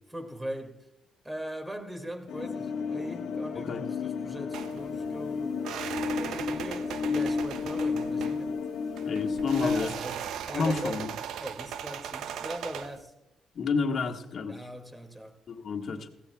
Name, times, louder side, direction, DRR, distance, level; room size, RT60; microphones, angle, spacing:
voice 1, 0.1-0.8 1.2-5.6 6.2-8.6 9.6-11.1 11.4-13.1 14.5-15.4, equal, 10° right, 2.0 m, -39 dB
sound 1, 2.3-9.8, left 5 dB, 75° left, 1.3 m, -32 dB
sound 2, 4.5-13.0, right 9 dB, 80° right, 0.6 m, -39 dB
voice 2, 9.0-9.9 10.5-11.1 13.5-14.6 15.5-16.1, left 5 dB, 55° left, 1.5 m, -30 dB
17.0 x 15.5 x 2.3 m
cardioid pair, 90°, 0 cm